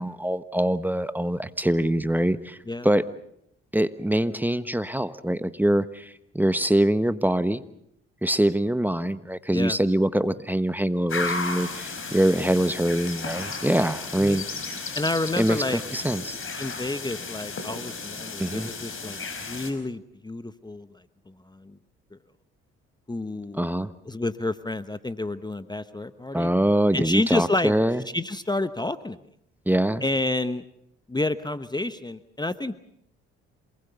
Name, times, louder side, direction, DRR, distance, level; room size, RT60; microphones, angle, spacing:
voice 1, 0.0-2.6 2.8-3.1 3.7-7.6 8.2-14.4 15.4-16.4 18.4-18.7 23.5-23.9 26.3-28.0 29.7-30.0, right 1 dB, 5° right, 13 dB, 1.3 m, -24 dB
sound 1, 11.1-19.7, left 4 dB, 45° left, 5.1 m, -34 dB
voice 2, 14.9-15.8 16.6-21.8 23.1-23.6 24.1-26.5 26.9-27.7 28.1-29.2 30.0-30.6 31.1-32.8, left 2 dB, 15° left, 13 dB, 1.1 m, -29 dB
27.5 x 20.0 x 7.0 m, 0.72 s
hypercardioid pair, 55°, 30 cm